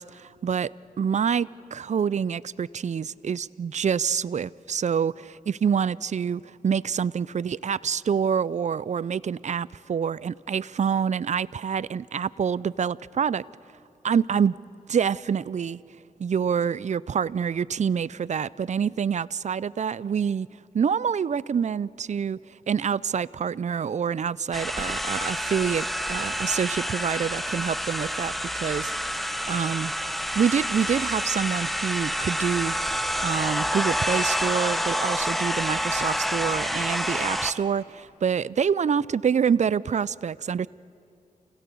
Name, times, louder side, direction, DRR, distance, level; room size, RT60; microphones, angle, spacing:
voice 1, 0.0-13.4 14.0-14.5 14.9-15.8 16.2-20.5 20.7-22.4 22.7-29.9 30.3-40.7, right 7 dB, 50° right, 0.4 m, -26 dB
sound 1, 24.5-37.5, equal, ahead, 1.2 m, -28 dB
29.0 x 17.0 x 6.9 m
cardioid pair, 45°, 15 cm